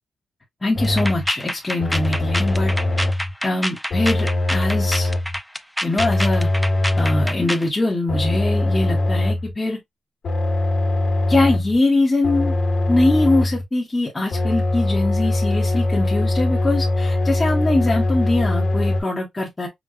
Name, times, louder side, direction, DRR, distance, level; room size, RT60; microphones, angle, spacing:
voice 1, 0.6-2.7 3.4-5.1 5.8-6.5 7.0-9.8 11.3-12.5 12.9-19.7, left 2 dB, 20° left, 1.0 m, -22 dB
sound 1, 0.7-1.3 1.8-3.3 3.9-5.4 6.0-7.4 8.1-9.5 10.2-11.8 12.2-13.6 14.3-19.0, left 2 dB, 60° left, 1.4 m, -21 dB
sound 2, 0.8-7.7, equal, ahead, 0.3 m, -28 dB
5.2 x 2.2 x 2.4 m
cardioid pair, 100°, 0 cm